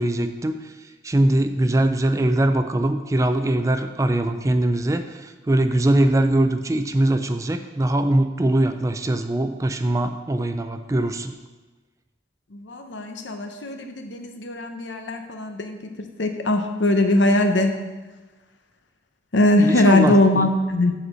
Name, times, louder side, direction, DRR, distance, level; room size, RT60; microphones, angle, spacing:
voice 1, 0.0-11.3 19.6-20.5, right 1 dB, 15° right, 8 dB, 0.3 m, -22 dB
voice 2, 12.5-15.9 16.2-17.8 19.3-20.9, left 1 dB, 90° left, 6 dB, 0.8 m, -20 dB
8.0 x 4.2 x 6.2 m, 1.2 s
head